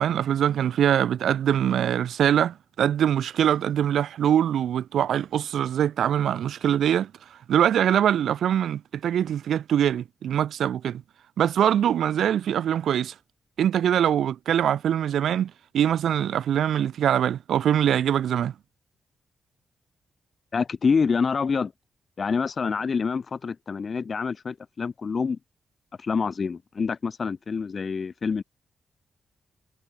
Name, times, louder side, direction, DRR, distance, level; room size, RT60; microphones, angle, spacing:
voice 1, 0.0-11.0 11.4-13.1 13.6-18.5, right 10 dB, 85° right, 1.1 m, -23 dB
voice 2, 20.5-21.7 22.2-25.4 26.0-28.4, left 5 dB, 45° left, 1.6 m, -26 dB
cardioid pair, 100°, 0 cm